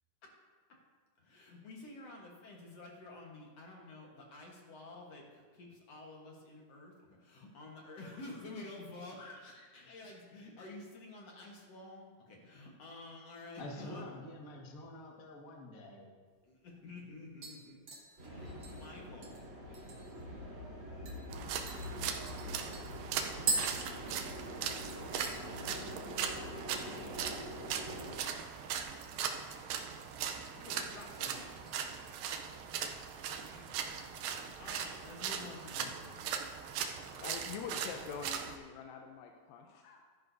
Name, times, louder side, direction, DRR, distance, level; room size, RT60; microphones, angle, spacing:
voice 1, 1.2-14.0 16.4-17.8 18.2-19.4 23.4-24.1 26.5-27.2 30.5-31.6 33.5-36.2, left 2 dB, 55° left, -1 dB, 2.1 m, -50 dB
voice 2, 13.6-16.1, left 1 dB, 40° left, -1 dB, 1.3 m, -47 dB
sound 1, 16.3-16.4 16.8-17.1 17.4-20.2 20.6-20.7 21.0-21.2 21.7-24.7 24.9-25.4 25.8-26.2 26.4-26.5 28.6-29.3 29.6-30.3 30.7-31.0 31.5-32.5 32.8-32.9, right 3 dB, 45° right, 1.6 m, -41 dB
sound 2, 18.2-28.2, left 1 dB, 20° right, 3.8 m, -45 dB
sound 3, 21.3-38.6, right 8 dB, 85° right, 2.5 m, -39 dB
voice 3, 36.8-40.0, left 6 dB, 90° left, 2 dB, 2.5 m, -45 dB
15.5 x 12.0 x 2.7 m, 1.5 s
omnidirectional pair, 4.0 m